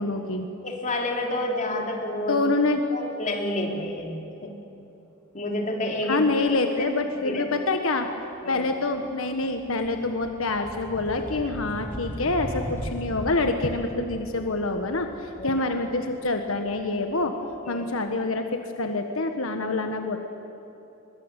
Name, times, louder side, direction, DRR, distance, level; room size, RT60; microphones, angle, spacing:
voice 1, 0.0-0.5 2.3-2.8 6.1-8.1 8.5-17.4 17.7-20.2, left 2 dB, 85° left, 5 dB, 1.5 m, -26 dB
voice 2, 0.6-2.4 2.9-4.5 5.3-6.2 6.8-6.9 7.2-7.5 8.4-8.6 15.4-15.6 17.6-17.8, left 1 dB, 40° left, 1 dB, 3.3 m, -29 dB
sound 1, 8.1-8.3 8.6-17.5, equal, 10° left, 3.5 m, -39 dB
24.0 x 22.5 x 8.3 m, 2.9 s
head